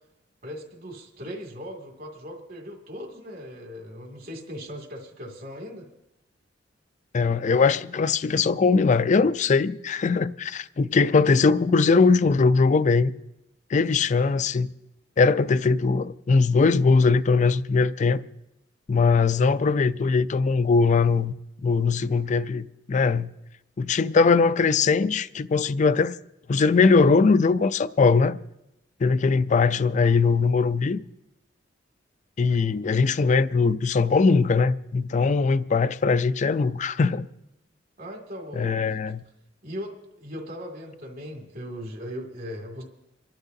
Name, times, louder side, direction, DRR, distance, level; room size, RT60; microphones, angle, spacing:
voice 1, 0.4-5.9 32.6-32.8 38.0-39.0 39.6-42.8, equal, 55° right, 2.4 m, -38 dB
voice 2, 7.1-13.1 13.7-14.7 15.2-18.2 18.9-21.3 21.6-23.3 23.8-26.2 26.5-28.4 29.0-31.0 32.4-37.3 38.6-39.2, left 4 dB, 40° left, 0.4 m, -21 dB
27.0 x 12.0 x 2.7 m
head